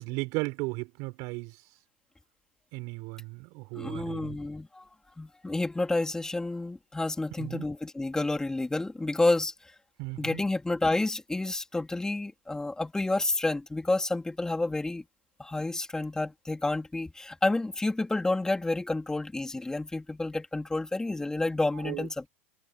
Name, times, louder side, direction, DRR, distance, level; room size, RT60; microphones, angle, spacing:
voice 1, 0.0-1.5 2.7-4.4 7.4-7.7 10.0-10.4 21.8-22.1, right 27 dB, 55° right, 4.9 m, -35 dB
voice 2, 3.7-4.8 5.2-9.5 10.2-15.0 15.4-22.3, left 2 dB, 10° left, 3.8 m, -29 dB
hypercardioid pair, 90°, 7 cm